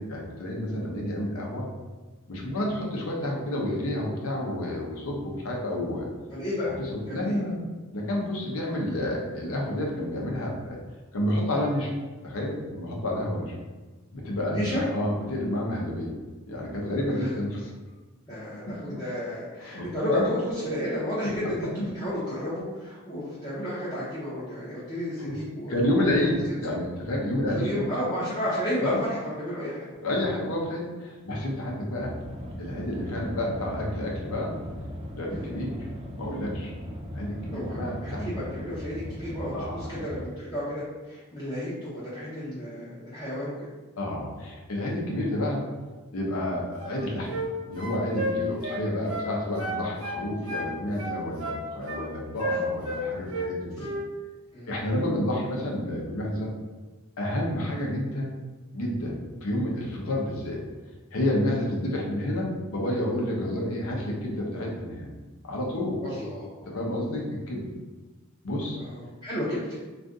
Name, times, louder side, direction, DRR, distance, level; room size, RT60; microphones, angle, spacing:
voice 1, 0.0-1.6 2.3-6.1 6.9-10.8 11.1-11.9 12.2-13.5 14.1-16.2 16.5-17.7 18.3-18.4 18.7-19.0 19.6-20.2 21.2-21.6 25.2-25.4 25.7-27.7 28.8-29.0 30.0-32.1 32.6-34.5 35.2-35.8 36.2-36.7 37.1-38.4 39.5-40.0 44.0-45.6 46.1-53.9 54.7-56.5 57.2-58.3 58.7-60.6 61.1-65.1 65.4-66.0 66.7-67.7 68.4-68.8, left 1 dB, 75° left, -2 dB, 0.7 m, -30 dB
voice 2, 6.3-6.7 7.0-7.4 14.5-14.8 17.1-17.3 18.3-21.7 21.9-25.9 26.2-26.4 27.5-29.8 31.3-31.4 35.3-35.5 37.5-43.5 50.1-50.4 54.5-54.8 66.0-66.5 68.8-69.8, equal, 20° left, -10 dB, 0.6 m, -32 dB
sound 1, 32.0-40.2, equal, 25° right, 0.3 m, -38 dB
sound 2, 46.8-47.5 47.8-49.3 49.6-50.7 51.0-52.0 52.4-53.5 53.8-54.0, right 1 dB, 75° right, 0.9 m, -32 dB
2.6 x 2.5 x 3.5 m, 1.2 s
head